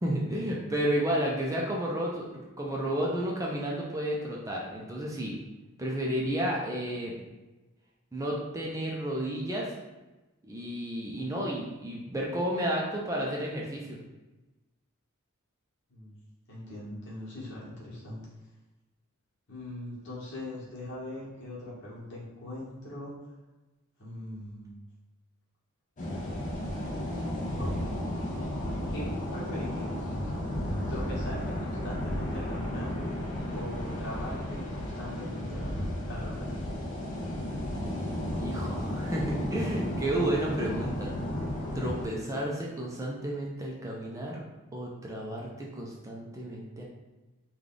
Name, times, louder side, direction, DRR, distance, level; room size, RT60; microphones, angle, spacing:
voice 1, 0.0-5.4 5.8-7.1 8.1-9.7 10.4-14.0 38.4-41.1 41.7-44.4 44.7-46.8, right 1 dB, 15° right, -3 dB, 0.4 m, -32 dB
voice 2, 16.5-18.2 19.5-23.1 24.0-24.8 27.6-27.9 28.9-29.1 29.3-30.0 30.9-32.9 33.5-36.5, left 1 dB, 55° left, -6 dB, 1.2 m, -41 dB
sound 1, 26.0-42.1, left 1 dB, 35° left, 0.6 m, -33 dB
3.3 x 2.3 x 3.8 m, 1.1 s
head